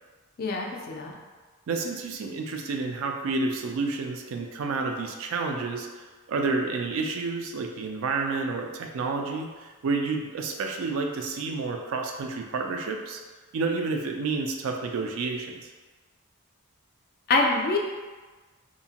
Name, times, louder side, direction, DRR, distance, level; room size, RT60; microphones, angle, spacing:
voice 1, 0.4-1.1 17.3-17.8, left 3 dB, 40° left, 0 dB, 0.3 m, -25 dB
voice 2, 1.7-13.2 13.5-15.7, right 4 dB, 65° right, 3 dB, 0.3 m, -30 dB
2.7 x 2.1 x 2.7 m, 1.3 s
head